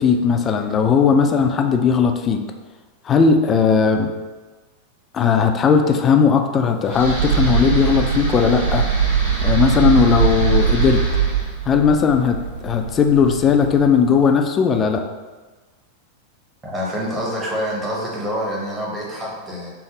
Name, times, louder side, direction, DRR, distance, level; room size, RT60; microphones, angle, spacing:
voice 1, 0.0-2.4 3.1-4.1 5.1-8.9 9.4-11.1 11.7-15.0, left 6 dB, 25° left, 5 dB, 0.3 m, -17 dB
sound 1, 6.9-14.1, right 6 dB, 60° right, 1.1 m, -21 dB
voice 2, 16.6-19.7, equal, 15° right, -4 dB, 0.7 m, -26 dB
3.3 x 2.0 x 3.8 m, 1.3 s
figure-of-eight pair, 90°, 0 cm